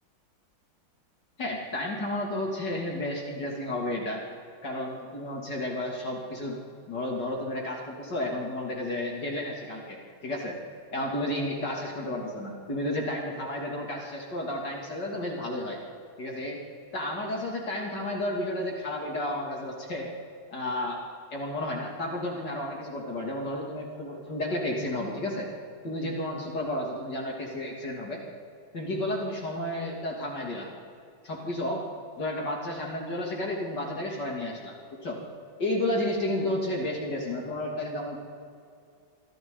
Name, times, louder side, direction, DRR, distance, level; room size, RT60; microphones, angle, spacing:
voice 1, 1.4-4.2 4.6-6.6 6.9-10.6 10.9-15.8 16.2-16.6 16.9-20.1 20.5-21.0 21.3-25.5 25.8-28.2 28.7-30.7 31.2-31.8 32.2-34.7 35.0-35.2 35.6-38.2, left 1 dB, 55° left, -1 dB, 3.3 m, -32 dB
28.0 x 23.5 x 4.0 m, 2.3 s
omnidirectional pair, 2.2 m